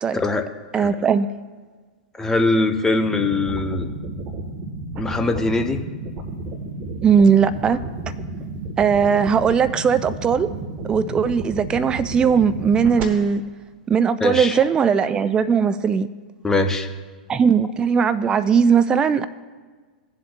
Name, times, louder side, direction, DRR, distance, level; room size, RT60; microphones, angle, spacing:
voice 1, 0.1-0.4 0.8-0.9 2.2-3.9 5.0-5.8 14.2-14.6 16.4-16.9, left 2 dB, 10° left, 7 dB, 0.7 m, -21 dB
voice 2, 0.7-1.3 7.0-7.8 8.8-10.5 10.9-13.4 13.9-16.1 17.3-19.3, right 6 dB, 20° right, 13 dB, 0.3 m, -18 dB
sound 1, 3.0-13.0, right 2 dB, 35° right, 1.2 m, -32 dB
18.0 x 7.5 x 2.3 m, 1.4 s
figure-of-eight pair, 95°, 5 cm